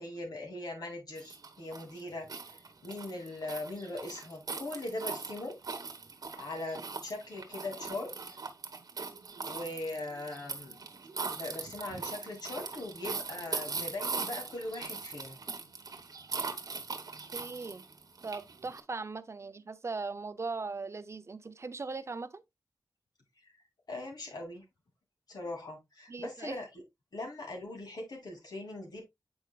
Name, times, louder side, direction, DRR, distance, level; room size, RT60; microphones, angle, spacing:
voice 1, 0.0-2.3 2.5-5.6 6.3-8.1 9.4-10.8 11.3-15.4 23.4-23.5 23.9-24.6 25.3-26.8 27.1-29.0, left 2 dB, 75° left, 2.6 m, -40 dB
sound 1, 1.2-18.8, right 4 dB, 65° right, 1.1 m, -40 dB
voice 2, 17.3-17.8 18.2-22.4 26.1-26.6, right 4 dB, 45° right, 0.5 m, -39 dB
7.8 x 5.2 x 2.3 m
wide cardioid pair, 115°, 7 cm